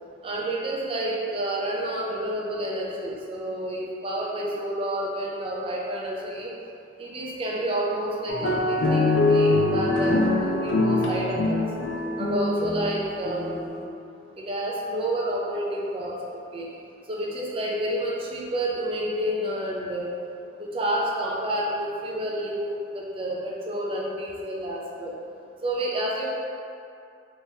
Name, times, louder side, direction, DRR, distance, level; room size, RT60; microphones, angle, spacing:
voice 1, 0.2-6.5 7.0-9.0 9.3-11.6 12.2-13.6 14.4-16.7 17.1-20.1 20.7-25.1 25.6-26.3, right 1 dB, 30° right, -4 dB, 0.4 m, -29 dB
sound 1, 8.3-13.9, left 2 dB, 90° left, 0.5 m, -24 dB
3.4 x 2.9 x 2.8 m, 2.5 s
head